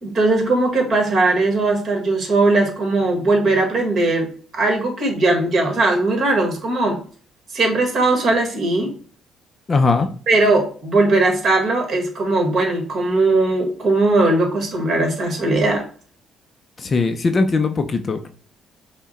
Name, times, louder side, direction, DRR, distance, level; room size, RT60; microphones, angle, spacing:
voice 1, 0.0-7.0 7.5-8.9 10.3-15.8, right 2 dB, 45° right, 2 dB, 1.5 m, -19 dB
voice 2, 9.7-10.1 16.8-18.3, left 3 dB, 35° left, 7 dB, 0.5 m, -19 dB
5.7 x 2.1 x 4.1 m, 0.43 s
cardioid pair, 110°, 0 cm